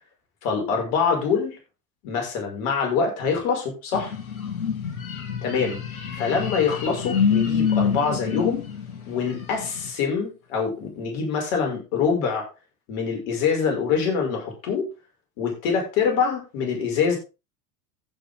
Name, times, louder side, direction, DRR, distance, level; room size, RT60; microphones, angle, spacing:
voice 1, 0.4-1.6 2.0-4.1 5.4-5.8 6.1-8.6 9.1-12.5 12.9-14.9 15.4-17.2, left 6 dB, 55° left, 1 dB, 6.1 m, -25 dB
sound 1, 3.9-9.9, left 7 dB, 75° left, 2.7 m, -27 dB
15.5 x 6.8 x 3.8 m, 0.29 s
figure-of-eight pair, 80°, 42 cm